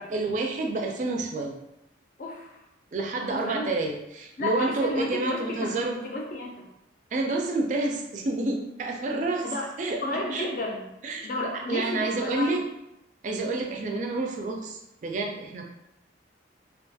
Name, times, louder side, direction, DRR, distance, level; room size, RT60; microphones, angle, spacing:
voice 1, 0.1-1.6 2.9-6.0 7.1-9.5 9.8-10.5 11.0-11.3 11.5-12.6 13.2-15.7, right 2 dB, 40° right, 2 dB, 0.3 m, -29 dB
voice 2, 2.2-2.6 3.2-3.7 4.4-5.8 6.0-6.6 9.4-9.7 10.0-10.9 11.2-12.6, left 2 dB, 45° left, -1 dB, 0.4 m, -32 dB
2.3 x 2.2 x 2.6 m, 0.85 s
head